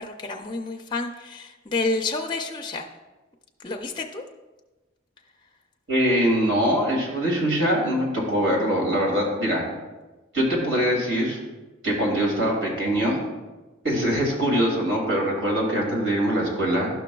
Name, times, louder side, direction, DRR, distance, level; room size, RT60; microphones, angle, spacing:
voice 1, 0.0-2.8 3.6-4.2, left 3 dB, 25° left, 2 dB, 0.4 m, -29 dB
voice 2, 5.9-9.6 10.3-11.4 11.8-13.2 13.8-16.9, equal, 75° right, -2 dB, 2.3 m, -23 dB
12.0 x 5.9 x 2.3 m, 1.2 s
head